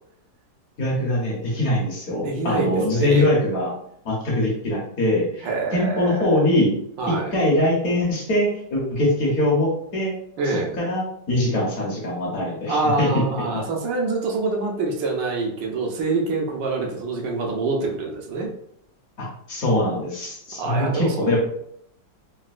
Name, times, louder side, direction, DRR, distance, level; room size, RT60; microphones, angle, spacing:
voice 1, 0.8-3.7 4.0-6.7 7.1-10.1 10.8-13.2 13.5-13.6 19.2-21.4, left 1 dB, 55° left, -4 dB, 1.2 m, -22 dB
voice 2, 2.2-3.3 5.4-6.3 7.0-7.3 10.4-10.8 12.7-18.5 20.6-21.4, right 3 dB, 80° right, 0 dB, 1.4 m, -26 dB
3.9 x 2.2 x 2.4 m, 0.71 s
omnidirectional pair, 2.0 m